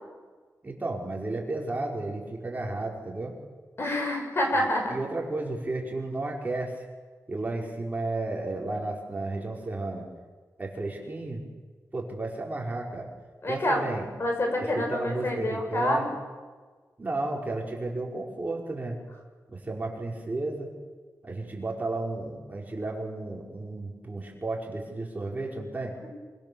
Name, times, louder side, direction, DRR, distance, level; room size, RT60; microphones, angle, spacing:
voice 1, 0.6-3.3 4.5-4.6 4.9-6.9 7.3-10.1 10.6-11.4 11.9-13.1 13.5-14.1 14.7-16.1 17.0-19.0 19.5-20.7 21.2-25.9, right 2 dB, 25° right, -1 dB, 5.2 m, -33 dB
voice 2, 3.8-5.0 13.4-13.8 14.2-16.0, left 1 dB, 40° left, 1 dB, 7.1 m, -27 dB
26.5 x 26.0 x 7.1 m, 1.4 s
wide cardioid pair, 130°, 6 cm